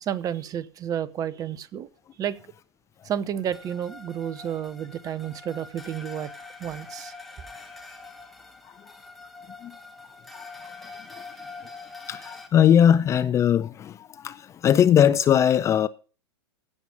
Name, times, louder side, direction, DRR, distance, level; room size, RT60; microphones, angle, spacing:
voice 1, 0.0-1.9 2.2-2.4 3.0-6.3 6.6-7.1, right 9 dB, 25° right, 0.8 m, -31 dB
sound 1, 3.5-12.5, left 3 dB, ahead, 1.5 m, -44 dB
voice 2, 12.1-15.9, left 9 dB, 20° left, 0.5 m, -20 dB
16.5 x 6.1 x 5.3 m
figure-of-eight pair, 95°, 14 cm